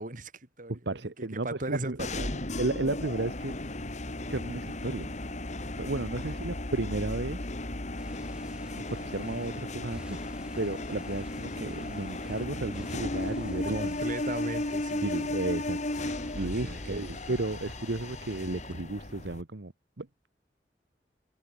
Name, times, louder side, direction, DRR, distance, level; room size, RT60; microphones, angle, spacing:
voice 1, 0.0-0.7 1.0-2.4 6.2-6.4 13.7-15.0 16.4-17.0, right 2 dB, 50° right, 3.4 m, -38 dB
voice 2, 0.7-2.0 2.6-3.5 4.3-5.1 5.8-7.4 8.7-10.2 10.6-14.0 15.0-15.8 16.1-19.7 20.0-20.1, right 2 dB, 75° right, 1.2 m, -33 dB
sound 1, 2.0-19.4, left 1 dB, 45° left, 2.4 m, -35 dB
sound 2, 8.0-18.8, right 1 dB, 5° right, 3.7 m, -55 dB
head